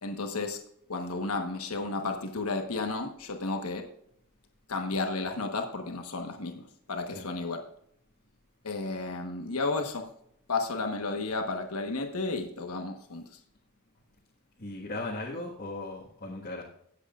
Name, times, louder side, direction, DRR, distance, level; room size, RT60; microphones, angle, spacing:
voice 1, 0.0-0.6 0.9-3.8 4.7-7.6 8.6-10.1 10.5-13.4, left 3 dB, 90° left, 4 dB, 1.2 m, -32 dB
voice 2, 14.6-16.6, left 2 dB, 45° left, -4 dB, 1.5 m, -37 dB
22.5 x 8.1 x 2.4 m, 0.73 s
head